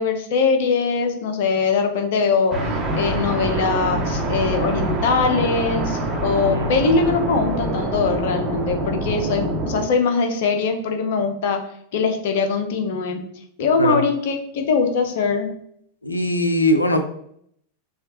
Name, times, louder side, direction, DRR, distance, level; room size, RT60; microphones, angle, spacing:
voice 1, 0.0-11.6 11.9-13.2 13.6-15.5, left 4 dB, 50° left, 5 dB, 0.8 m, -22 dB
sound 1, 2.5-9.8, right 1 dB, 20° right, 1.1 m, -25 dB
voice 2, 16.0-17.0, left 1 dB, 80° left, 6 dB, 0.5 m, -20 dB
6.4 x 2.4 x 2.9 m, 0.70 s
figure-of-eight pair, 90°, 0 cm